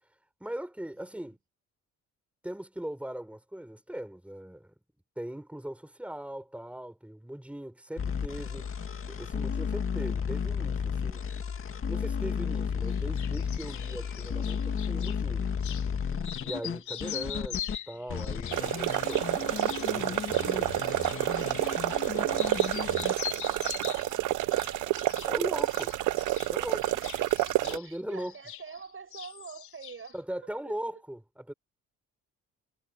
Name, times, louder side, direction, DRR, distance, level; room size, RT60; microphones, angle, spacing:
voice 1, 0.4-1.4 2.4-4.7 5.2-8.6 9.0-11.2 11.9-15.5 16.1-19.5 19.8-20.7 25.3-25.9 26.5-26.9 27.6-28.3 30.1-31.5, right 1 dB, 5° right, 5.5 m, -39 dB
sound 1, 8.0-17.8 18.1-23.1, left 6 dB, 45° left, 2.3 m, -33 dB
sound 2, 12.9-15.2 15.6-15.9 16.2-22.1 22.3-24.2 24.5-25.3 25.6-28.9 29.1-30.1, left 10 dB, 75° left, 3.1 m, -42 dB
sound 3, 18.5-27.8, right 16 dB, 90° right, 0.9 m, -29 dB
voice 2, 20.5-25.6 25.9-26.1 26.9-30.2 30.6-31.0, right 6 dB, 45° right, 7.5 m, -49 dB
cardioid pair, 90°, 30 cm